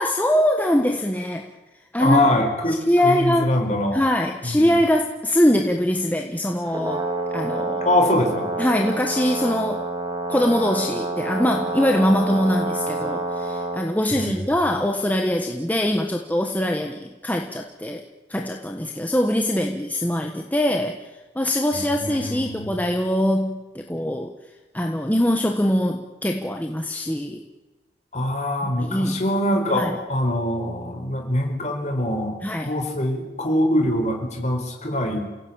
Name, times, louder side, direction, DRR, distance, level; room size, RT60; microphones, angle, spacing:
voice 1, 0.0-1.5 1.9-2.3 2.9-3.5 3.9-7.0 7.3-7.8 8.6-9.8 10.3-18.0 18.3-21.0 21.3-24.3 24.7-27.4 28.6-29.2 29.7-30.0 32.4-32.7, left 1 dB, 10° left, 3 dB, 1.3 m, -22 dB
voice 2, 2.0-4.0 4.4-4.7 7.8-8.5 14.1-14.4 21.7-22.8 28.1-32.4 32.6-35.3, left 1 dB, 35° left, 3 dB, 4.7 m, -23 dB
Brass instrument, 6.7-13.8, right 2 dB, 20° right, 2.6 m, -28 dB
28.0 x 17.0 x 8.9 m, 1.1 s
head